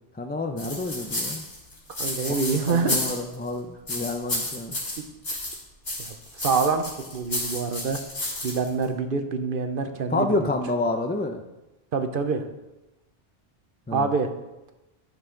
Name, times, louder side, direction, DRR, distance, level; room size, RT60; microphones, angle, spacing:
voice 1, 0.1-1.5 2.3-2.4 2.7-4.8 10.1-11.4 13.9-14.1, left 2 dB, 15° left, 5 dB, 0.4 m, -28 dB
sound 1, 0.6-3.5 3.9-5.6 5.8-8.8, left 1 dB, 75° left, 2.5 m, -31 dB
voice 2, 2.0-3.0 6.4-8.0 8.4-10.3 11.9-12.4 13.9-14.3, right 4 dB, 60° right, 8 dB, 0.9 m, -26 dB
11.0 x 6.5 x 3.8 m, 1.0 s
omnidirectional pair, 1.0 m